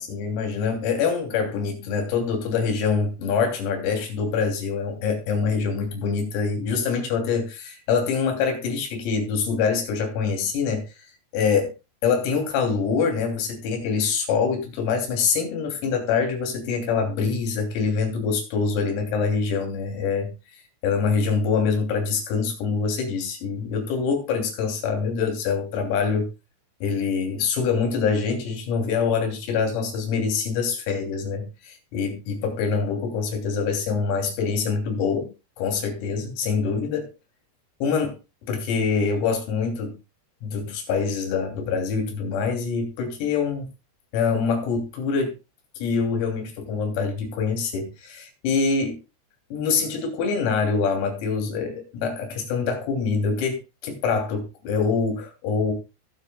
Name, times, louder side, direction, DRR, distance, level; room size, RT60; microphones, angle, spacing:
voice 1, 0.0-10.8 11.3-11.7 12.0-20.3 20.8-26.3 26.8-35.3 35.6-37.1 37.8-38.2 38.5-39.9 40.4-43.7 44.1-45.3 45.8-49.0 49.5-55.7, left 5 dB, 90° left, 3 dB, 5.7 m, -25 dB
21.5 x 8.1 x 2.2 m, 0.26 s
omnidirectional pair, 6.0 m